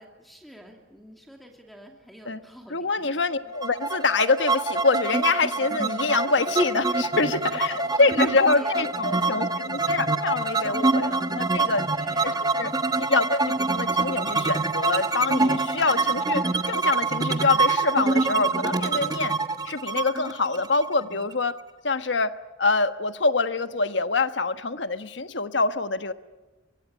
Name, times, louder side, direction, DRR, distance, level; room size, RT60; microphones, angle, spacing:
voice 1, 0.0-3.5 5.8-5.9 7.5-10.1 10.9-11.4 11.9-13.2 15.9-16.1, equal, ahead, 2 dB, 2.6 m, -47 dB
voice 2, 2.7-11.8 12.2-12.7 13.0-19.3 19.6-21.6 21.8-22.3 22.6-26.1, left 3 dB, 70° left, 10 dB, 1.3 m, -25 dB
sound 1, 3.6-21.3, right 3 dB, 20° right, 1.1 m, -25 dB
24.0 x 23.5 x 9.9 m, 1.1 s
head